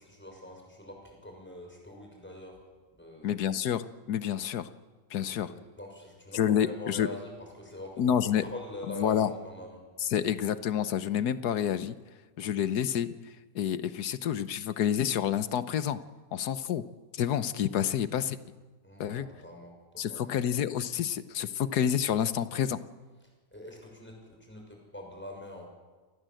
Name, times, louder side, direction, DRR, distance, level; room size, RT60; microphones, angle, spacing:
voice 1, 0.0-2.6 2.9-3.3 5.2-10.5 18.8-20.4 23.5-25.7, left 1 dB, 5° left, 1 dB, 6.3 m, -44 dB
voice 2, 3.2-4.7 5.1-5.5 6.3-7.1 8.0-8.4 9.0-9.3 10.1-11.9 12.4-13.1 13.5-16.0 16.3-16.8 17.1-18.4 19.0-19.3 20.0-22.8, left 9 dB, 65° left, 13 dB, 1.4 m, -28 dB
28.0 x 19.0 x 7.8 m, 1.4 s
omnidirectional pair, 2.0 m